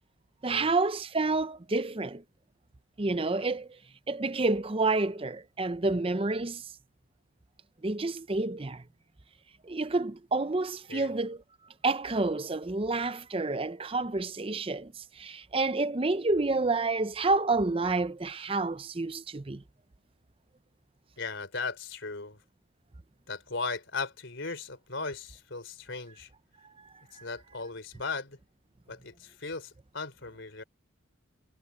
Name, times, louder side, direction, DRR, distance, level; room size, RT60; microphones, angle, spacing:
voice 1, 0.4-2.2 3.0-3.7 4.1-6.6 7.8-8.8 9.6-11.4 11.8-19.6 27.2-27.3, right 3 dB, 25° right, 0.6 m, -29 dB
voice 2, 21.2-22.4 23.3-26.3 27.2-28.4 28.9-30.6, left 4 dB, 60° left, 4.4 m, -37 dB
head